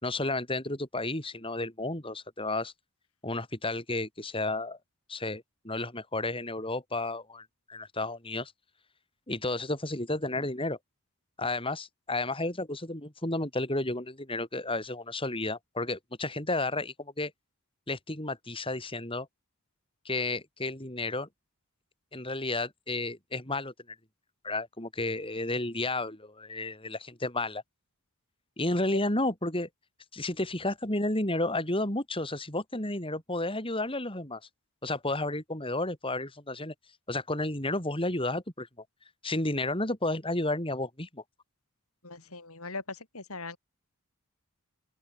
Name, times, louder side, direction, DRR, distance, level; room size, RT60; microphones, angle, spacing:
voice 1, 0.0-2.7 3.2-4.8 5.1-8.5 9.3-10.8 11.4-17.3 17.9-19.3 20.0-21.3 22.1-23.7 24.4-27.6 28.6-29.7 30.1-34.4 34.8-36.7 37.1-38.7 39.2-41.2, left 2 dB, 25° left, 6.7 m, -32 dB
voice 2, 42.0-43.6, left 3 dB, 80° left, 7.7 m, -40 dB
open air
head